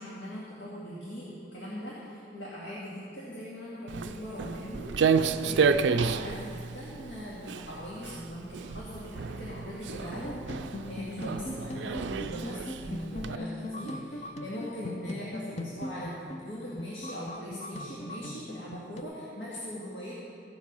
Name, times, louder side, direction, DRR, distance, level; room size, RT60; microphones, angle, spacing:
voice 1, 0.0-4.9 5.4-20.2, equal, 75° left, -7 dB, 2.0 m, -40 dB
Walk footsteps, 3.9-13.4, right 5 dB, 80° right, 0.4 m, -30 dB
sound 1, 10.1-19.0, left 2 dB, 35° left, 0.5 m, -40 dB
15.5 x 7.5 x 5.4 m, 2.6 s
head